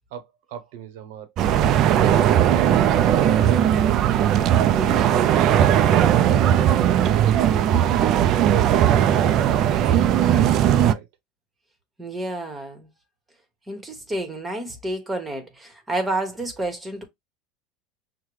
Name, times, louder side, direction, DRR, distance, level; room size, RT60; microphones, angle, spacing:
voice 1, 0.1-2.1 2.4-8.7 9.5-11.1, right 9 dB, 75° right, 0.9 m, -38 dB
sound 1, 1.4-10.9, right 10 dB, 50° right, 0.4 m, -18 dB
voice 2, 4.8-5.3 12.0-12.9 13.7-17.0, right 1 dB, 15° right, 1.1 m, -30 dB
5.7 x 2.2 x 3.2 m
supercardioid pair, 110°, 0 cm